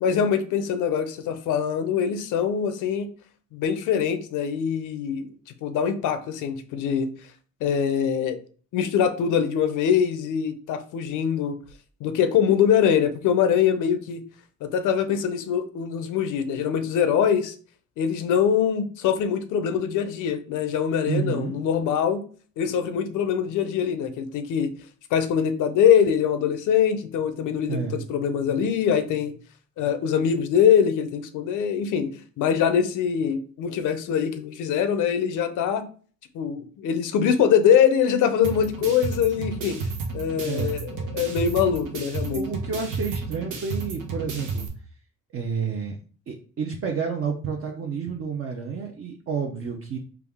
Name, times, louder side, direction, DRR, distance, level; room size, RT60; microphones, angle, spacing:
voice 1, 0.0-3.1 3.5-5.3 5.6-7.1 7.6-8.4 8.7-11.5 12.0-14.2 14.6-17.5 18.0-22.2 22.6-24.7 25.1-29.3 29.8-32.1 32.4-35.8 36.3-39.9 40.1-42.4, left 8 dB, 80° left, 9 dB, 0.6 m, -23 dB
voice 2, 21.1-21.6 27.7-28.0 40.4-40.7 42.3-44.7 45.3-46.0 46.3-50.0, right 6 dB, 45° right, 1 dB, 0.6 m, -30 dB
sound 1, 38.4-44.7, right 4 dB, 90° right, 0.9 m, -32 dB
3.4 x 2.4 x 3.5 m, 0.41 s
cardioid pair, 90°, 30 cm